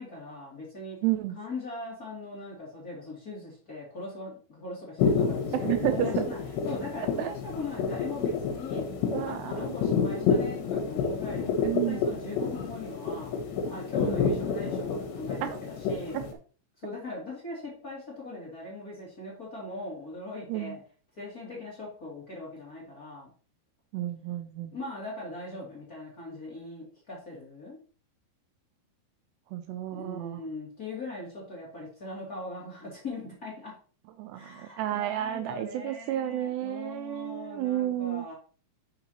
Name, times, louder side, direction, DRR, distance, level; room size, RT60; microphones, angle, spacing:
voice 1, 0.0-1.0 1.3-6.4 6.7-8.8 9.2-13.3 13.7-16.2 16.8-20.8 21.1-23.3 24.7-27.8 29.9-33.7 34.3-38.3, left 2 dB, 25° left, -5 dB, 2.5 m, -40 dB
voice 2, 1.0-1.4 5.6-6.2 7.2-7.3 9.1-9.8 11.6-12.0 14.0-14.2 15.4-15.6 16.1-16.3 20.5-20.8 23.9-24.8 29.5-30.4 34.2-38.3, right 13 dB, 80° right, 8 dB, 2.6 m, -31 dB
sound 1, 5.0-16.3, left 5 dB, 75° left, 3.3 m, -29 dB
9.8 x 6.2 x 3.0 m, 0.40 s
omnidirectional pair, 5.0 m